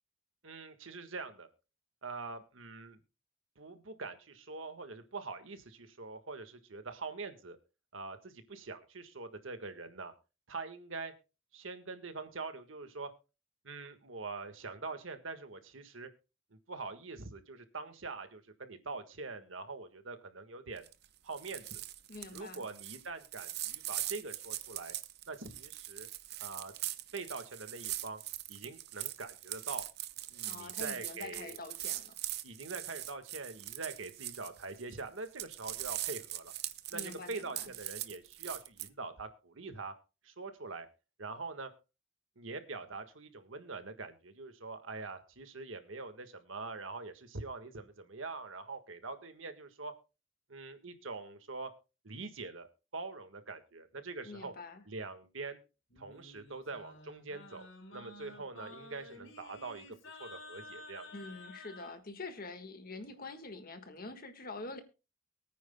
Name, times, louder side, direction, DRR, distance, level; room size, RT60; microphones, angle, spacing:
voice 1, 0.4-1.5 2.0-3.0 3.6-7.6 7.9-10.1 10.5-11.1 11.5-13.1 13.6-16.1 16.7-20.8 21.2-21.8 22.3-24.9 25.3-26.1 26.4-26.7 27.1-28.2 28.5-29.8 30.3-31.5 32.4-36.5 36.9-39.9 40.2-40.9 41.2-41.7 42.4-49.9 50.5-51.7 52.0-52.7 52.9-54.5 54.8-55.6 56.0-61.1, right 3 dB, 85° right, 8 dB, 1.5 m, -44 dB
sound 1, 20.8-21.1 21.3-35.0 35.3-38.9, right 14 dB, 55° right, 0.7 m, -41 dB
voice 2, 22.1-22.7 30.4-32.1 36.9-37.7 54.2-54.8 61.1-64.8, left 3 dB, 50° left, 8 dB, 1.6 m, -45 dB
Singing, 55.9-62.0, left 2 dB, 75° left, 4.1 m, -52 dB
23.5 x 9.3 x 2.2 m, 0.30 s
head